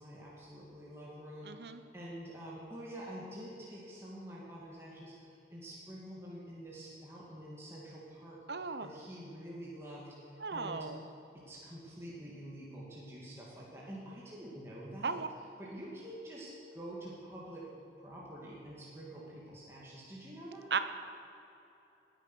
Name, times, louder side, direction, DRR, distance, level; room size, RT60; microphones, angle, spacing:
voice 1, 0.0-10.9 11.3-15.2 15.6-17.7 18.0-20.7, right 1 dB, 15° right, -6 dB, 2.4 m, -47 dB
voice 2, 1.4-1.8 8.5-8.9 10.4-11.0 15.0-15.3 20.7-20.8, right 5 dB, 75° right, 9 dB, 0.9 m, -35 dB
19.5 x 9.4 x 6.3 m, 2.9 s
head